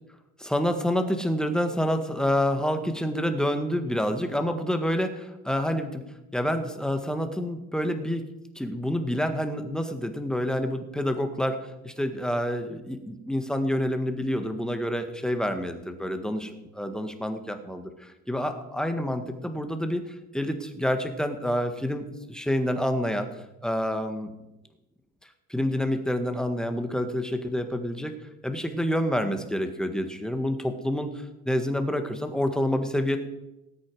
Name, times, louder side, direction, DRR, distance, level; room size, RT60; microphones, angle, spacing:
voice 1, 0.4-6.0 6.3-8.2 8.6-24.3 25.5-28.1 28.4-33.2, equal, ahead, 6 dB, 1.7 m, -28 dB
19.0 x 8.5 x 4.8 m, 0.95 s
cardioid pair, 105°, 35 cm